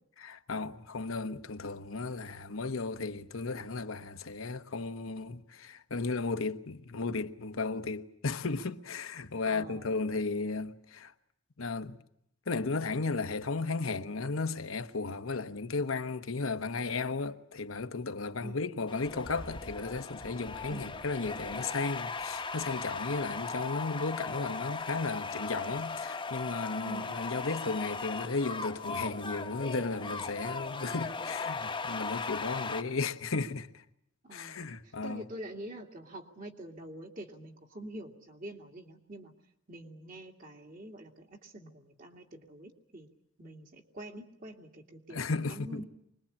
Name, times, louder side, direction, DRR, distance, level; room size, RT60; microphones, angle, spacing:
voice 1, 0.2-11.1 11.6-12.0 12.5-33.8 34.3-35.2 45.1-45.8, left 3 dB, 85° left, 1.1 m, -35 dB
voice 2, 9.5-10.0 18.4-18.6 20.7-20.9 23.2-23.4 26.8-27.1 30.9-31.2 34.2-39.3 39.7-43.1 43.4-45.8, right 1 dB, 40° right, 2.4 m, -46 dB
sound 1, 18.9-32.8, left 4 dB, 25° left, 1.0 m, -38 dB
25.0 x 20.5 x 8.6 m
head